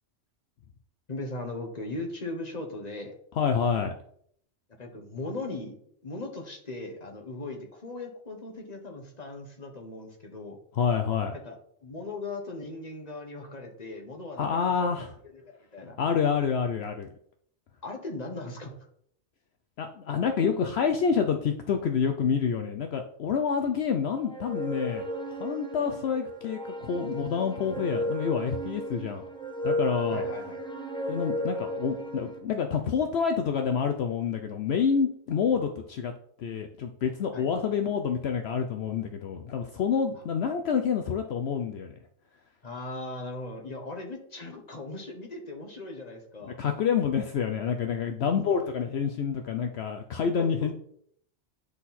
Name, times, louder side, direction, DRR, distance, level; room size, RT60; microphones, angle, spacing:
voice 1, 1.1-3.1 4.8-10.6 11.3-14.9 15.3-15.9 17.8-18.7 30.1-30.6 37.3-37.5 40.1-40.2 42.6-46.6 48.2-48.7 50.4-50.7, left 2 dB, 35° left, 3 dB, 1.3 m, -39 dB
voice 2, 3.4-3.9 10.7-11.4 14.4-15.1 16.0-17.1 19.8-25.0 25.4-29.2 29.6-30.3 31.1-36.1 36.4-41.9 46.4-50.7, left 6 dB, 65° left, 5 dB, 0.8 m, -28 dB
sound 1, 24.2-32.4, equal, 5° left, 0.7 m, -34 dB
9.6 x 4.1 x 4.2 m, 0.66 s
omnidirectional pair, 1.2 m